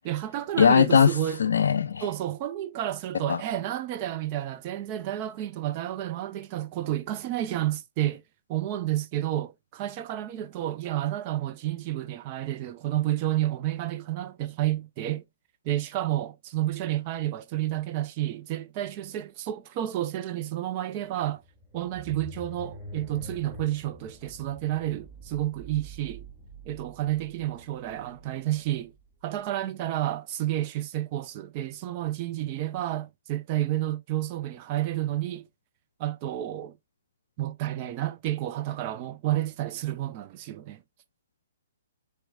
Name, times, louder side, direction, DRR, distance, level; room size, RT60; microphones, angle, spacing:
voice 1, 0.0-1.4 2.0-8.2 8.5-15.2 15.6-21.4 21.7-26.3 26.7-28.9 29.2-35.5 36.0-36.7 37.4-40.8, right 13 dB, 35° right, 0.5 m, -30 dB
voice 2, 0.6-2.1 3.3-3.4, left 7 dB, 70° left, 0.4 m, -20 dB
sound 1, 21.4-29.5, right 1 dB, 10° right, 1.6 m, -46 dB
4.5 x 4.5 x 2.3 m
hypercardioid pair, 130°, 0 cm